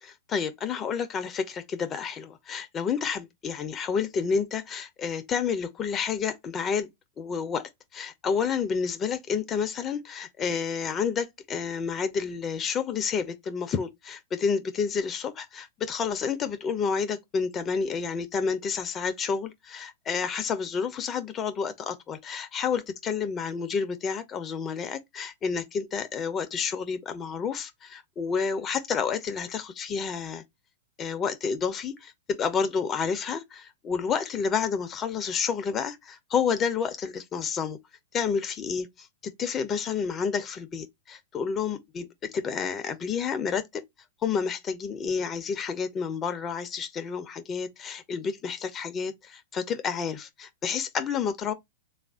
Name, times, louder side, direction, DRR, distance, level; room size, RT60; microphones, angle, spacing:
voice 1, 0.0-6.9 7.2-30.4 31.0-37.8 38.1-43.8 44.2-51.5, left 6 dB, 25° left, 0.6 m, -30 dB
3.5 x 2.4 x 3.5 m
hypercardioid pair, 120°, 0 cm